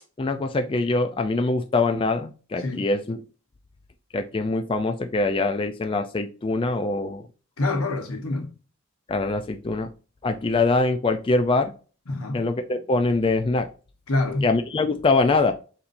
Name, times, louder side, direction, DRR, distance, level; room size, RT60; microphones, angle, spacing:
voice 1, 0.2-3.2 4.1-7.2 9.1-9.9 10.2-11.7 12.3-13.7 14.4-15.5, left 3 dB, 25° left, 0.3 m, -23 dB
voice 2, 2.6-2.9 7.6-8.5 12.1-12.4 14.1-14.5, left 2 dB, 90° left, 1.1 m, -26 dB
4.1 x 4.1 x 2.6 m
head